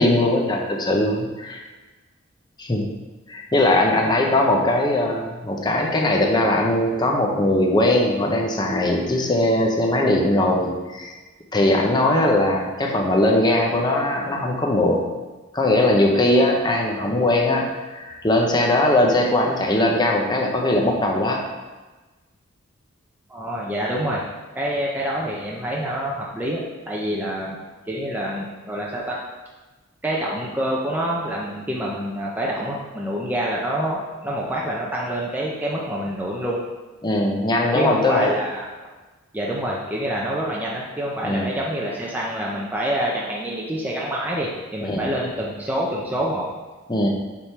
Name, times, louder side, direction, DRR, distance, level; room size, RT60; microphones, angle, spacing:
voice 1, 0.0-1.6 2.6-2.9 3.3-11.1 11.5-15.0 15.5-21.4 37.0-38.3 41.2-41.5 44.8-45.1 46.9-47.1, left 1 dB, 20° left, 0 dB, 0.8 m, -20 dB
voice 2, 23.3-27.6 27.9-29.2 30.0-36.6 37.7-38.7 39.3-46.5, right 1 dB, 10° right, -4 dB, 0.7 m, -27 dB
7.0 x 3.7 x 4.6 m, 1.2 s
head